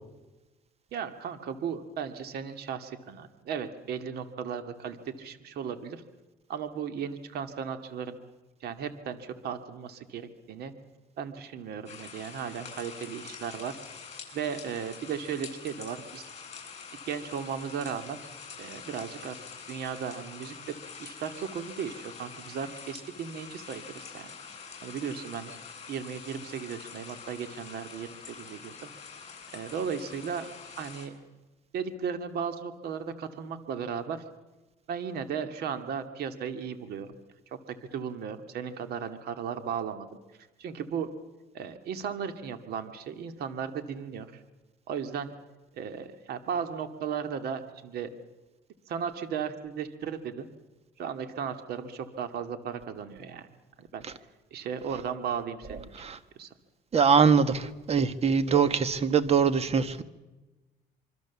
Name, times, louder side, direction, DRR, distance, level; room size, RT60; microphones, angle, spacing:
voice 1, 0.9-6.0 6.5-8.2 8.6-10.7 11.2-13.8 14.3-16.2 17.1-18.2 18.6-19.4 19.7-20.5 21.0-24.3 24.8-25.5 25.9-28.9 29.5-30.5 30.8-31.1 31.7-34.2 34.9-37.1 37.9-40.2 40.6-41.1 41.5-44.3 44.9-45.3 45.7-48.1 48.9-50.5 51.0-53.5 53.8-54.0 54.5-55.9 56.4-56.5, right 7 dB, 70° right, 9 dB, 2.2 m, -36 dB
sound 1, 11.9-31.1, left 6 dB, 35° left, 7.9 m, -45 dB
voice 2, 55.7-56.2 56.9-60.0, right 6 dB, 40° right, 13 dB, 1.6 m, -23 dB
26.0 x 24.0 x 7.2 m, 1.1 s
cardioid pair, 110°, 17 cm